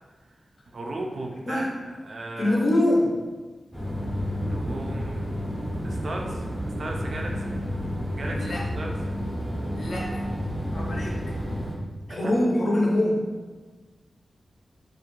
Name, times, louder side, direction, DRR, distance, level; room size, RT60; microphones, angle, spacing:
voice 1, 0.7-1.7 2.1-2.6 4.4-5.3 5.8-7.6 8.2-8.9 12.1-12.3, right 2 dB, 60° right, 0 dB, 0.3 m, -36 dB
voice 2, 2.4-3.1 8.3-8.6 9.7-10.2 10.7-11.2 12.1-13.2, left 1 dB, 60° left, -2 dB, 0.5 m, -24 dB
sound 1, 3.7-11.7, equal, ahead, 0.5 m, -30 dB
2.4 x 2.2 x 2.9 m, 1.3 s
wide cardioid pair, 120°, 0 cm